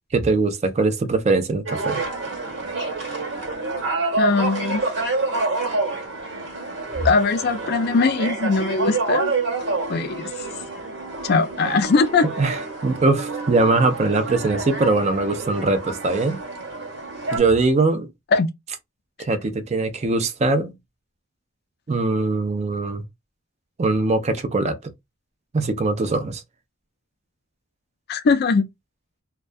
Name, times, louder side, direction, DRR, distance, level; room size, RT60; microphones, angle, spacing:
voice 1, 0.1-2.0 12.4-16.4 17.3-18.1 19.2-20.7 21.9-23.0 23.8-24.9 25.5-26.4, right 3 dB, 30° right, 0.4 m, -21 dB
sound 1, 1.7-17.4, right 3 dB, 55° right, 1.3 m, -28 dB
voice 2, 4.2-4.8 7.0-9.3 9.9-10.3 11.2-12.3 18.3-18.5 28.1-28.6, left 4 dB, 50° left, 0.4 m, -20 dB
2.3 x 2.2 x 2.5 m
head